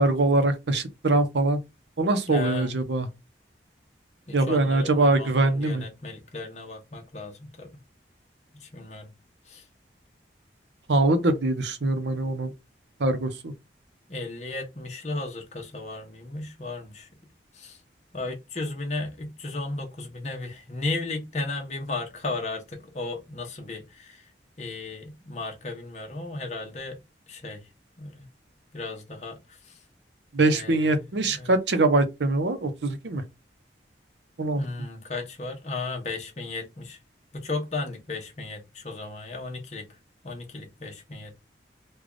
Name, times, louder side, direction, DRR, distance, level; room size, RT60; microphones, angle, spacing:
voice 1, 0.0-1.6 2.0-3.1 4.3-5.8 10.9-12.5 13.0-13.5 30.3-33.2 34.4-34.6, right 2 dB, 80° right, 0.7 m, -23 dB
voice 2, 2.3-2.7 4.3-7.8 8.5-9.1 9.5-9.6 14.1-17.1 17.5-17.8 18.1-24.3 24.6-27.0 27.3-27.6 28.0-28.3 28.7-29.8 30.4-31.5 34.6-37.0 37.3-39.9 40.2-41.4, left 3 dB, 40° left, 0.9 m, -35 dB
3.3 x 2.3 x 3.7 m
head